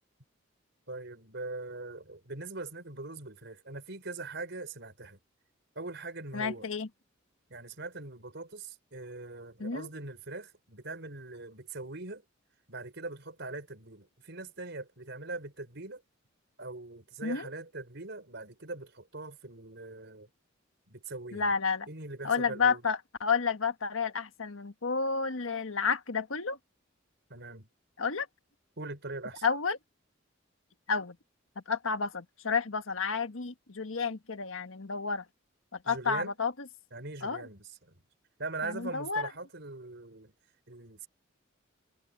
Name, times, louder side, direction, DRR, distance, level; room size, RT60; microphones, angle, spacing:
voice 1, 0.9-5.2 5.7-6.6 7.5-12.2 12.7-16.0 16.6-20.3 20.9-21.5 21.9-22.8 27.3-27.7 28.8-29.4 35.8-36.3 36.9-38.0 38.4-40.3 40.7-41.1, right 3 dB, 60° right, 5.0 m, -41 dB
voice 2, 6.3-6.9 9.6-9.9 17.2-17.5 21.3-21.9 22.2-26.6 28.0-28.3 29.4-29.8 30.9-31.2 31.5-35.2 35.7-36.5 37.2-37.5 38.6-39.3, left 5 dB, 90° left, 1.5 m, -31 dB
head